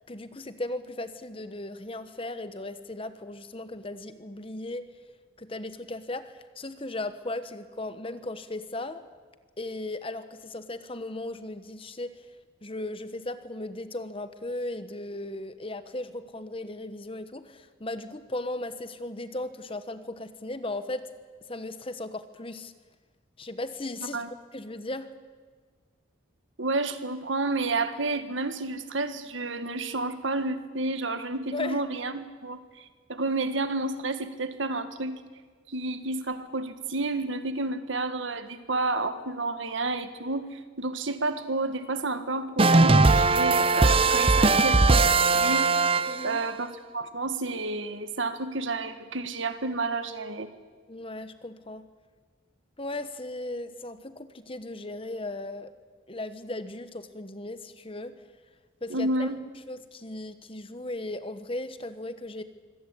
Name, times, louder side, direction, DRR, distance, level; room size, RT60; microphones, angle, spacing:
voice 1, 0.1-4.9 5.4-9.0 9.6-12.3 12.6-21.1 21.5-22.7 23.4-24.2 24.5-25.1 31.5-31.8 46.1-46.4 50.9-51.9 52.8-55.7 56.1-58.1 58.8-59.3 59.7-62.4, left 2 dB, 25° left, 11 dB, 1.1 m, -36 dB
voice 2, 26.6-35.1 35.7-45.8 46.2-46.7 46.9-50.5 58.9-59.4, right 2 dB, 70° right, 10 dB, 1.7 m, -30 dB
sound 1, 42.6-46.5, right 3 dB, 25° right, 0.6 m, -20 dB
25.0 x 17.5 x 8.5 m, 1.5 s
head